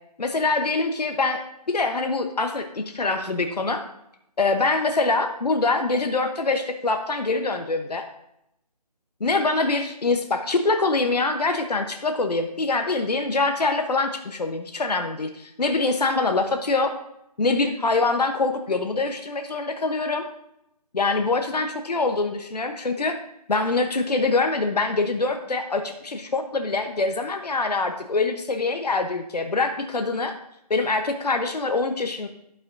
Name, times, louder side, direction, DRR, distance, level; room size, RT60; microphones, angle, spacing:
voice 1, 0.2-1.4 1.7-3.8 4.4-8.1 9.2-16.9 17.4-20.2 20.9-23.2 23.5-30.3 30.7-32.3, left 3 dB, 75° left, 6 dB, 1.0 m, -24 dB
16.0 x 5.8 x 2.7 m, 0.81 s
figure-of-eight pair, 165°, 21 cm